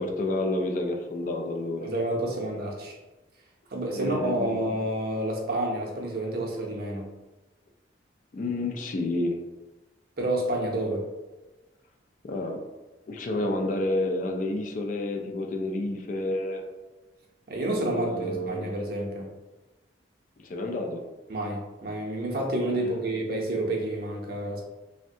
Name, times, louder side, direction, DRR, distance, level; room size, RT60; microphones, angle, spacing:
voice 1, 0.0-1.9 3.9-4.6 8.3-9.4 12.2-12.6 13.1-16.6 17.8-18.7 20.4-21.0, left 1 dB, 40° left, 3 dB, 0.3 m, -29 dB
voice 2, 1.8-3.0 3.7-7.1 10.2-11.0 17.5-19.3 21.3-24.6, right 1 dB, 50° right, -1 dB, 0.6 m, -29 dB
3.5 x 2.1 x 2.6 m, 1.1 s
head